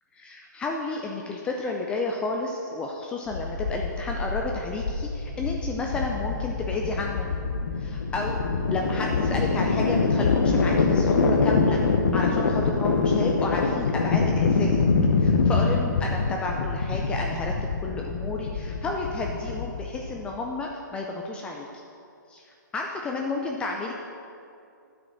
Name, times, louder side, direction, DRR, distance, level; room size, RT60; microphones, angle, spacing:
voice 1, 0.1-7.3 7.8-8.5 8.7-11.8 12.1-14.8 15.2-17.5 17.8-21.7 22.3-22.4 22.7-23.9, left 3 dB, 10° left, 0 dB, 0.4 m, -31 dB
sound 1, 3.3-20.3, left 4 dB, 65° left, 0.8 m, -24 dB
9.3 x 5.1 x 6.2 m, 2.5 s
hypercardioid pair, 155°, 11 cm